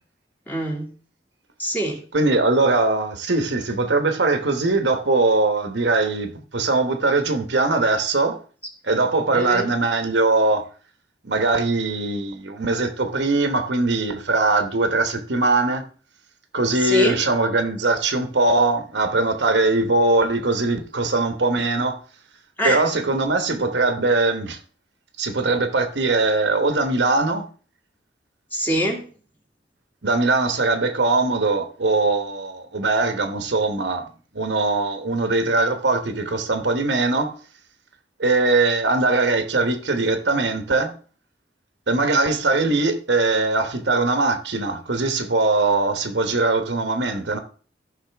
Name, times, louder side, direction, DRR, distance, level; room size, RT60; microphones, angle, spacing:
voice 1, 0.5-0.9 1.6-2.0 9.3-9.7 16.8-17.2 22.6-22.8 28.5-29.0, right 1 dB, 10° left, 2.0 m, -24 dB
voice 2, 2.1-8.4 8.8-10.7 11.2-15.8 16.5-22.0 22.6-24.6 25.2-27.5 30.0-34.0 34.3-37.3 38.2-40.9 41.9-47.4, right 3 dB, 70° right, 1.0 m, -21 dB
13.5 x 5.6 x 3.4 m
head